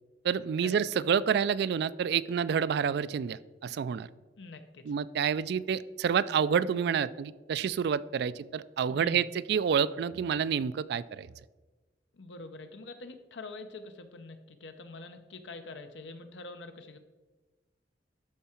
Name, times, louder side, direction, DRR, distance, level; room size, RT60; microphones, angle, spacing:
voice 1, 0.2-4.1 4.9-11.3, right 7 dB, 65° right, 17 dB, 0.3 m, -28 dB
voice 2, 4.4-4.9 8.9-9.3 12.1-17.0, left 3 dB, 85° left, 8 dB, 0.8 m, -45 dB
12.5 x 4.7 x 4.4 m, 1.2 s
head